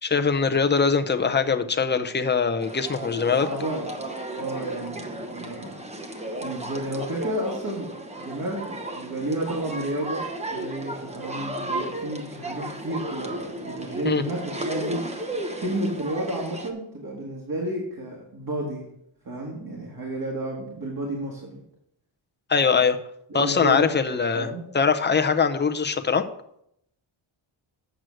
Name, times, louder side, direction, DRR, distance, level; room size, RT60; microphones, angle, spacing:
voice 1, 0.0-3.5 14.0-14.2 22.5-23.0 23.3-24.5 24.7-26.3, left 5 dB, 20° left, 7 dB, 0.5 m, -22 dB
sound 1, 2.6-16.7, right 1 dB, 15° right, 0.9 m, -34 dB
voice 2, 3.4-3.9 4.3-5.8 6.4-15.3 15.6-18.9 19.2-21.6 23.3-24.0 24.3-24.7, right 1 dB, 45° right, -2 dB, 1.8 m, -31 dB
7.9 x 6.1 x 6.3 m, 0.75 s
wide cardioid pair, 170°, 48 cm